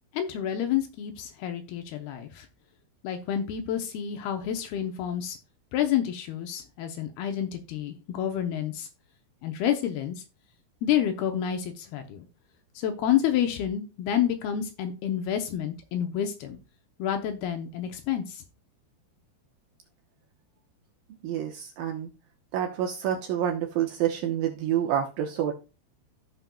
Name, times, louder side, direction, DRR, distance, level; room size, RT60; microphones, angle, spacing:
voice 1, 0.1-2.5 3.0-5.4 5.7-8.9 9.4-10.2 10.8-12.3 12.8-16.6 17.0-18.4, left 10 dB, 75° left, 6 dB, 2.5 m, -29 dB
voice 2, 21.2-22.1 22.5-25.5, right 10 dB, 75° right, 1 dB, 2.3 m, -28 dB
15.0 x 5.2 x 2.2 m, 0.30 s
omnidirectional pair, 4.8 m